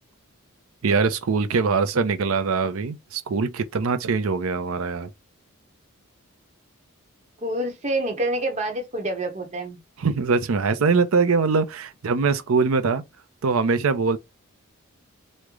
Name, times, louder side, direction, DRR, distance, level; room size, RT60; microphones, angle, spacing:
voice 1, 0.8-5.1 10.0-13.0 13.4-14.2, right 4 dB, 80° right, 0.5 m, -22 dB
voice 2, 7.4-9.8, right 1 dB, 35° right, 0.8 m, -27 dB
3.1 x 2.1 x 3.5 m
head